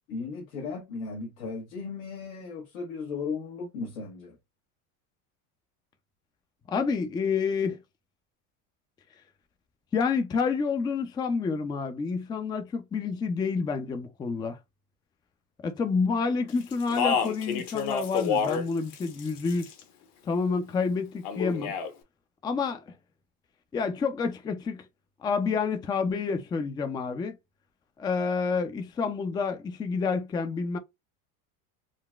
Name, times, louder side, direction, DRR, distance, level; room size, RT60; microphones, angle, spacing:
voice 1, 0.1-4.4, left 4 dB, 90° left, 1.2 m, -36 dB
voice 2, 6.7-7.8 9.9-14.6 15.6-19.7 20.2-21.7 22.4-22.8 23.7-24.8 25.2-27.4 28.0-30.8, left 5 dB, 10° left, 0.3 m, -28 dB
Speech, 16.7-18.7 18.9-19.8 21.2-21.9, left 6 dB, 55° left, 0.9 m, -28 dB
3.8 x 2.2 x 2.3 m
supercardioid pair, 115°, 40 cm